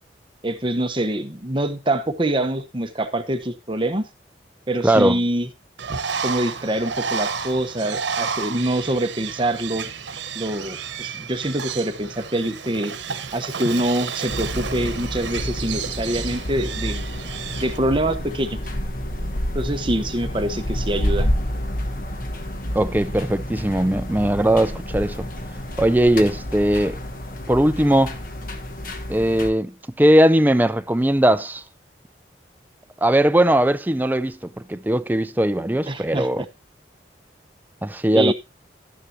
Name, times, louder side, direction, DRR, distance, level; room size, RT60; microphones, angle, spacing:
voice 1, 0.4-4.0 4.7-5.5 6.2-9.9 10.3-12.9 13.3-17.0 17.6-18.6 19.5-21.3 35.9-36.5 38.1-38.3, right 1 dB, 25° right, 1.1 m, -25 dB
voice 2, 4.8-5.2 22.7-25.3 25.8-27.0 27.5-28.1 29.1-29.7 30.0-31.6 33.0-34.4 34.7-36.4 37.8-38.3, right 1 dB, 10° right, 0.4 m, -19 dB
Bird, 5.8-17.8, right 6 dB, 85° right, 1.1 m, -31 dB
sound 1, 14.3-29.5, equal, 50° left, 1.2 m, -29 dB
12.5 x 9.9 x 2.8 m
head